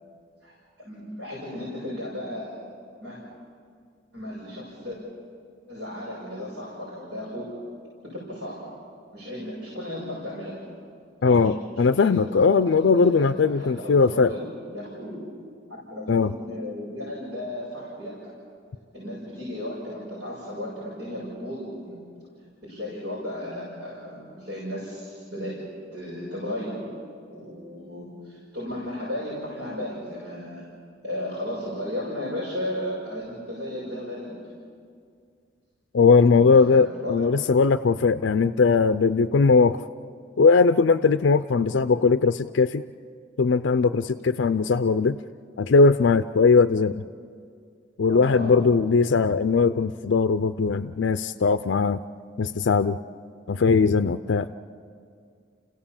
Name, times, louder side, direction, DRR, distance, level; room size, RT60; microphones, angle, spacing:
voice 1, 0.4-2.7 3.0-3.2 4.1-5.0 5.7-7.5 8.0-8.7 9.1-10.6 11.2-11.5 11.9-14.5 14.7-15.2 15.7-18.3 18.9-22.0 22.6-25.6 25.9-26.8 27.3-30.6 31.0-34.3 36.2-37.2 41.6-41.9 48.1-48.7, left 1 dB, 70° right, -7 dB, 6.6 m, -35 dB
voice 2, 11.2-14.3 16.1-16.3 35.9-39.8 40.4-42.8 43.4-45.2 45.6-47.0 48.0-52.0 52.4-53.0 53.5-54.5, left 4 dB, 80° left, 11 dB, 0.5 m, -19 dB
29.5 x 16.5 x 7.2 m, 2.2 s
head